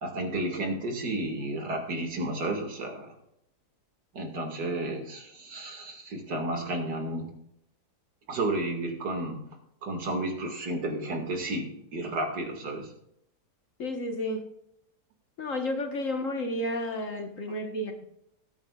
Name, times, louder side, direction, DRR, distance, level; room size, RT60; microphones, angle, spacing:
voice 1, 0.0-3.1 4.1-7.3 8.3-9.4 9.8-12.9, right 2 dB, 80° right, 2 dB, 2.7 m, -32 dB
voice 2, 13.8-14.4 15.4-18.1, left 1 dB, 50° left, 4 dB, 1.7 m, -31 dB
20.0 x 8.7 x 2.4 m, 0.77 s
omnidirectional pair, 1.8 m